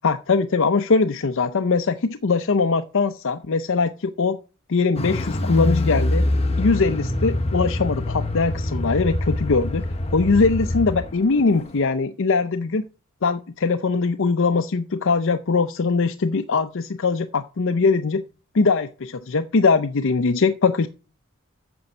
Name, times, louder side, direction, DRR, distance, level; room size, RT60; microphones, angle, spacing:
voice 1, 0.0-4.4 4.7-6.2 6.6-9.9 10.1-12.8 13.2-18.2 18.5-20.9, left 4 dB, 65° left, 9 dB, 0.6 m, -21 dB
Car, 5.0-11.1 11.4-11.5, left 1 dB, 30° left, 1.2 m, -24 dB
9.3 x 7.0 x 6.5 m, 0.34 s
head